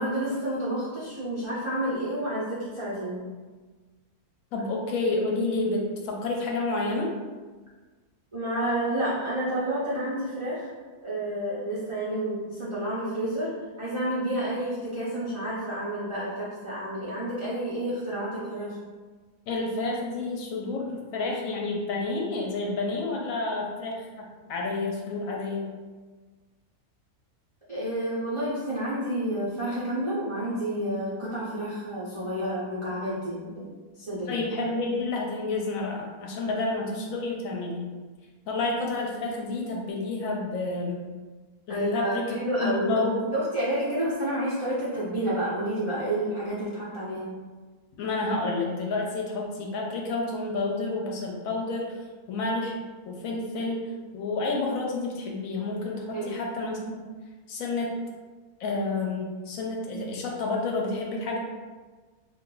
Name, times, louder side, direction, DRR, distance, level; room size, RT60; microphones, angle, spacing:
voice 1, 0.0-3.2 8.3-10.7 11.0-13.5 13.8-18.8 27.7-33.7 34.0-34.4 41.7-47.3 56.1-56.3, right 1 dB, 55° right, -10 dB, 0.3 m, -30 dB
voice 2, 4.5-7.1 19.5-25.7 34.3-37.8 38.5-41.0 41.7-43.3 48.0-52.0 52.3-52.7 53.0-57.0 57.5-57.9 58.6-61.4, left 2 dB, 70° left, -1 dB, 0.9 m, -30 dB
2.5 x 2.3 x 3.7 m, 1.4 s
omnidirectional pair, 1.6 m